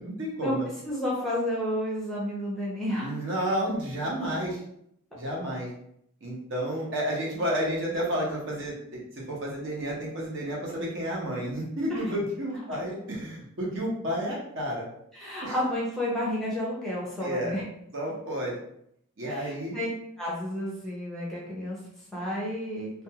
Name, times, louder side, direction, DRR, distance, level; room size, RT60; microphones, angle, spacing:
voice 1, 0.0-0.7 3.0-4.6 5.1-5.7 6.2-14.9 15.4-15.6 17.2-17.6 17.9-18.5 19.2-19.8, equal, 55° right, -4 dB, 0.8 m, -31 dB
voice 2, 0.8-3.2 11.9-12.0 15.1-17.6 19.3-19.9 20.2-21.8 22.1-22.9, left 1 dB, ahead, -6 dB, 0.6 m, -31 dB
2.5 x 2.2 x 2.8 m, 0.72 s
head